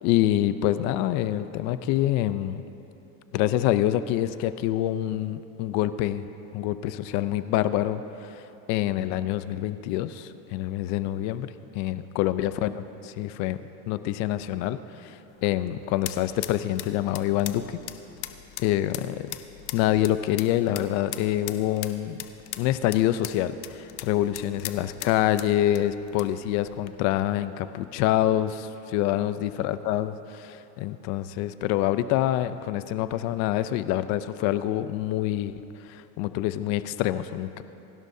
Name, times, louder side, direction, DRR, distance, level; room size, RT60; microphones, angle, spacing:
voice 1, 0.0-2.6 3.3-8.4 8.7-17.8 18.6-19.4 19.7-22.2 22.6-37.6, left 13 dB, 55° left, 12 dB, 0.6 m, -26 dB
sound 1, 15.3-26.9, left 14 dB, 85° left, 0.8 m, -41 dB
28.0 x 12.0 x 2.7 m, 2.9 s
cardioid pair, 155°, 34 cm